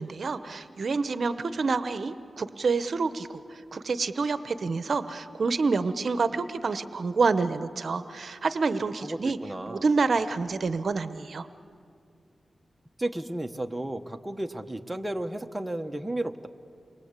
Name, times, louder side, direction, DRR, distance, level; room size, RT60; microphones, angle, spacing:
voice 1, 0.0-9.4 9.7-11.5, right 4 dB, 60° right, 12 dB, 0.8 m, -28 dB
voice 2, 9.0-9.8 13.0-16.5, right 1 dB, 15° right, 5 dB, 1.1 m, -33 dB
29.0 x 22.5 x 8.3 m, 2.3 s
wide cardioid pair, 95°, 0 cm